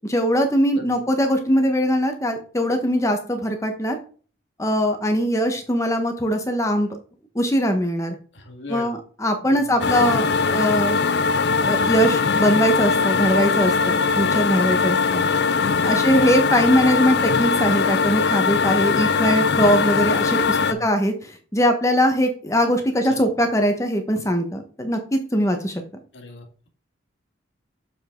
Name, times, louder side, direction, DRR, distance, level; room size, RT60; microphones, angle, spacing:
voice 1, 0.1-4.0 4.6-6.9 7.3-8.1 8.7-11.0 11.6-15.2 15.8-25.8, equal, 15° left, 5 dB, 1.1 m, -21 dB
voice 2, 0.7-1.0 8.3-9.0 9.4-10.2 15.6-16.0 20.6-20.9 23.0-23.2 26.1-26.5, left 2 dB, 75° left, 3 dB, 1.9 m, -39 dB
sound 1, 9.8-20.7, left 5 dB, 60° left, 0.4 m, -21 dB
7.1 x 5.3 x 3.8 m, 0.40 s
head